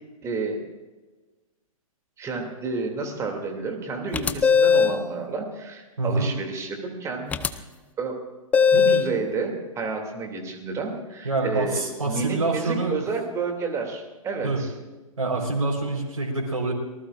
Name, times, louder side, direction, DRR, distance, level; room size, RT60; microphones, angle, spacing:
voice 1, 0.2-0.6 2.2-7.6 8.0-8.1 8.7-14.7, right 4 dB, 15° right, 3 dB, 2.7 m, -30 dB
sound 1, 4.1-5.0 7.3-7.5 8.5-9.1, left 6 dB, 10° left, 0.5 m, -18 dB
voice 2, 6.0-6.3 11.2-12.9 14.4-14.6 15.2-16.7, right 3 dB, 65° right, -1 dB, 4.3 m, -26 dB
25.5 x 19.0 x 2.5 m, 1.2 s
figure-of-eight pair, 115°, 18 cm